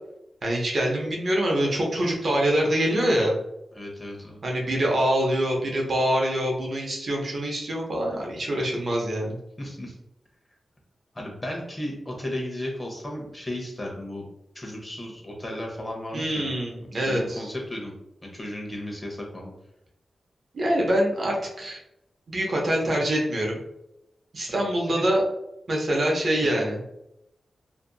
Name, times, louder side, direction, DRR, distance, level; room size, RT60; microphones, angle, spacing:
voice 1, 0.4-3.3 4.4-9.4 16.1-17.5 20.5-21.8 22.3-23.6 24.3-25.2 25.7-26.8, right 1 dB, 60° right, -1 dB, 0.7 m, -25 dB
voice 2, 3.7-4.4 9.6-10.0 11.1-14.2 14.5-16.5 16.8-17.9 18.2-19.5 22.8-22.9 24.5-24.6 24.9-25.1 26.6-26.7, left 1 dB, 25° left, -1 dB, 0.8 m, -35 dB
2.7 x 2.5 x 2.3 m, 0.84 s
cardioid pair, 55°, 0 cm